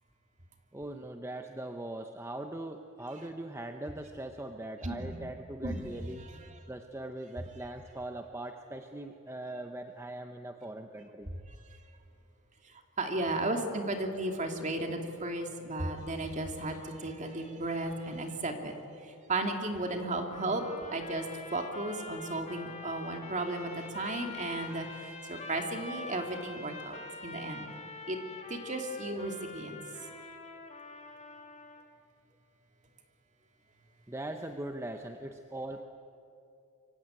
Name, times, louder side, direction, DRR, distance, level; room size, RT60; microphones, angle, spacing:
voice 1, 0.7-6.3 6.7-11.3 34.1-35.8, right 1 dB, 10° right, 5 dB, 0.9 m, -41 dB
voice 2, 4.8-5.1 5.6-5.9 13.0-18.7 19.3-20.6 20.9-21.2 21.5-27.0 27.2-27.7 28.1-28.2 28.5-29.8, right 2 dB, 35° right, 4 dB, 2.7 m, -34 dB
sound 1, 20.3-31.9, left 3 dB, 30° left, 2.6 m, -45 dB
26.0 x 23.5 x 9.1 m, 2.7 s
head